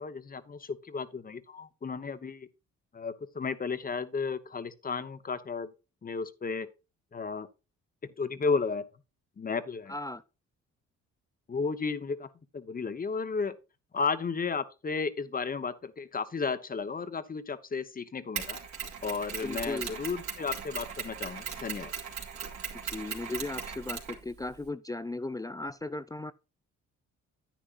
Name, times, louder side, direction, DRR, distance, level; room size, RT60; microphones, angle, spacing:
voice 1, 0.0-2.5 2.9-5.7 6.0-6.7 7.1-7.5 8.2-8.8 9.4-9.9 11.5-12.3 12.5-13.5 13.9-18.6 19.0-21.9, left 4 dB, 30° left, 1.0 m, -33 dB
voice 2, 9.9-10.2 19.4-19.9 22.8-26.3, left 2 dB, 10° left, 0.4 m, -36 dB
Mechanisms, 18.4-24.7, right 7 dB, 65° right, 2.5 m, -38 dB
10.0 x 9.5 x 2.5 m
cardioid pair, 90°, 30 cm